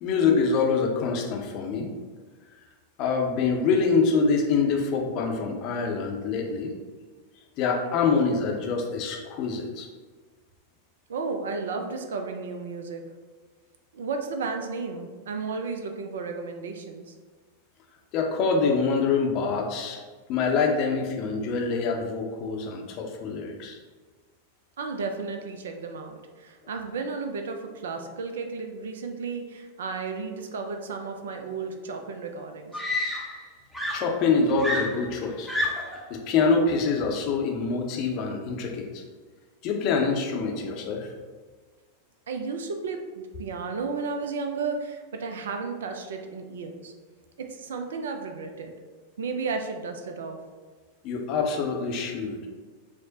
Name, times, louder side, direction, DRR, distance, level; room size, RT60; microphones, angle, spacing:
voice 1, 0.0-1.9 3.0-6.7 7.6-9.9 18.1-20.0 20.3-23.8 33.9-35.5 36.1-39.0 39.6-41.1 51.0-52.4, left 4 dB, 40° left, 1 dB, 0.6 m, -25 dB
voice 2, 11.1-13.0 13.9-17.1 24.8-32.8 42.3-46.9 47.4-48.7 49.2-50.4, right 4 dB, 60° right, 5 dB, 0.3 m, -33 dB
Screaming, 31.9-32.0 32.7-33.5 33.7-36.0 37.0-37.3, left 1 dB, ahead, 0.6 m, -30 dB
4.8 x 2.1 x 2.7 m, 1.4 s
figure-of-eight pair, 90°, 0 cm